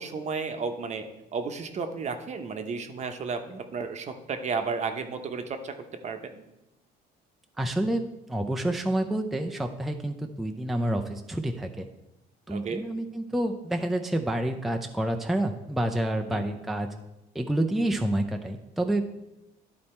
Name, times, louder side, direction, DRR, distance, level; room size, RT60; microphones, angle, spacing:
voice 1, 0.0-5.7 6.0-6.4 12.5-12.8 16.3-16.5, right 5 dB, 40° right, 6 dB, 0.9 m, -33 dB
voice 2, 7.6-11.9 12.5-16.9 17.3-19.1, right 1 dB, ahead, 4 dB, 0.5 m, -28 dB
11.5 x 4.2 x 4.3 m, 0.95 s
cardioid pair, 110°, 17 cm